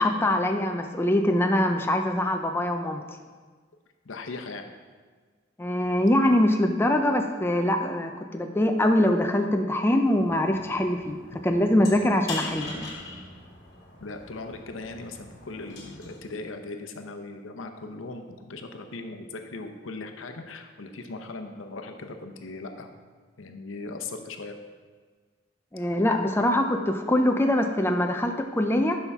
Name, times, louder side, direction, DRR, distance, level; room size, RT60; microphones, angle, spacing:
voice 1, 0.0-3.1 5.6-12.9 25.7-29.0, left 1 dB, 10° left, 4 dB, 0.4 m, -23 dB
voice 2, 4.0-4.7 14.0-22.9 23.4-24.6, left 3 dB, 80° left, 5 dB, 0.8 m, -39 dB
sound 1, 10.1-16.2, left 3 dB, 60° left, 1.9 m, -42 dB
11.5 x 5.5 x 3.5 m, 1.5 s
head